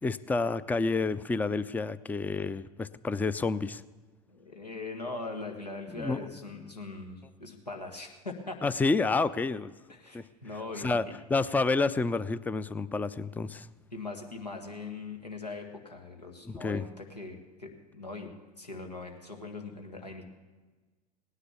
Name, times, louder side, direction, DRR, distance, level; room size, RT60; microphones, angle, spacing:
voice 1, 0.0-3.8 5.9-6.3 8.6-9.7 10.1-10.3 10.8-11.0 11.3-13.7 16.4-16.9, left 3 dB, 10° left, 16 dB, 0.4 m, -29 dB
voice 2, 4.3-8.6 9.9-11.2 13.9-20.2, left 3 dB, 90° left, 3 dB, 1.8 m, -41 dB
17.5 x 9.9 x 6.9 m, 1.3 s
figure-of-eight pair, 80°, 20 cm